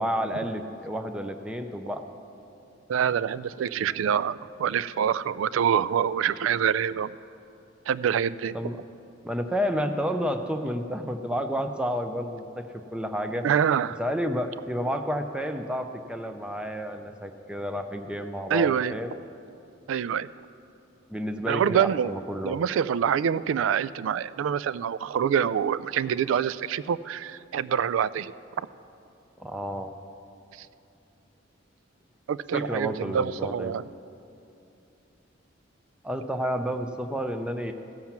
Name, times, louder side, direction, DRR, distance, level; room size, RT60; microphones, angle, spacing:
voice 1, 0.0-2.1 8.5-8.8 9.2-12.6 12.9-13.5 14.0-19.2 21.1-22.6 29.4-29.9 32.5-33.7 36.0-37.7, equal, 5° right, 6 dB, 0.5 m, -30 dB
voice 2, 2.9-7.1 7.9-8.5 13.4-14.0 18.5-19.0 19.9-20.3 21.5-22.2 22.4-28.3 30.5-30.7 32.3-33.9, right 8 dB, 85° right, 17 dB, 0.3 m, -26 dB
15.5 x 7.4 x 5.9 m, 2.8 s
head